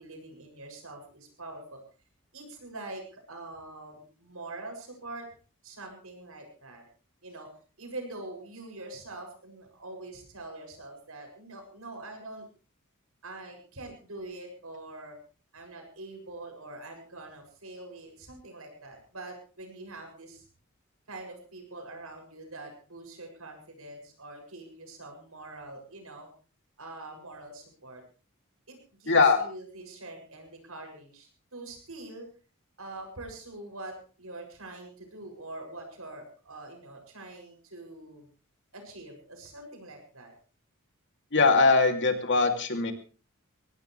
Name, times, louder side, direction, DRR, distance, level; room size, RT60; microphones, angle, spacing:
voice 1, 0.0-1.8 2.3-5.3 5.6-6.8 7.2-7.5 7.8-12.5 13.2-15.2 15.5-20.5 21.1-26.3 26.8-28.0 28.7-32.3 32.8-38.3 38.7-40.3, right 2 dB, 80° right, 3 dB, 7.4 m, -44 dB
voice 2, 29.1-29.4 41.3-42.9, left 4 dB, 60° left, 5 dB, 2.9 m, -21 dB
22.5 x 18.0 x 3.4 m, 0.38 s
head